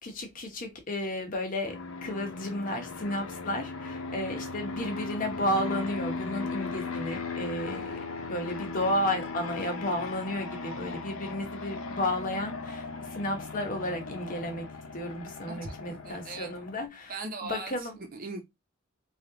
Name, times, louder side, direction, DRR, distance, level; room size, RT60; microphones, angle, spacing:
voice 1, 0.0-8.0 8.3-18.0, left 1 dB, 40° left, 1.1 m, -33 dB
Fixed-wing aircraft airplane, 1.7-16.9, left 3 dB, 85° left, 0.7 m, -37 dB
voice 2, 15.5-16.5 17.1-18.4, right 3 dB, 45° right, 1.0 m, -39 dB
3.3 x 2.6 x 3.9 m
head